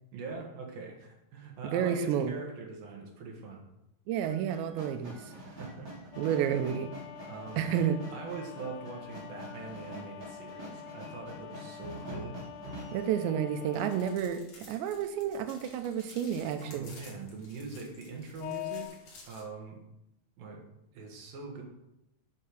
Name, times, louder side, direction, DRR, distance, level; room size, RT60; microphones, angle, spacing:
voice 1, 0.1-3.7 5.4-5.9 7.3-7.7 8.1-12.4 16.6-19.8 20.4-20.7 20.9-21.6, right 4 dB, 65° right, 1 dB, 3.1 m, -43 dB
voice 2, 1.6-2.4 4.1-5.2 6.2-6.9 7.6-8.0 12.9-16.9, right 9 dB, 90° right, 9 dB, 3.0 m, -30 dB
sound 1, 4.2-13.0, right 1 dB, 30° right, 3.7 m, -45 dB
sound 2, 6.1-14.2 18.4-18.8, left 13 dB, 80° left, 2.9 m, -45 dB
sound 3, 13.7-19.4, left 3 dB, 50° left, 3.5 m, -54 dB
9.0 x 6.8 x 6.4 m, 0.87 s
omnidirectional pair, 5.0 m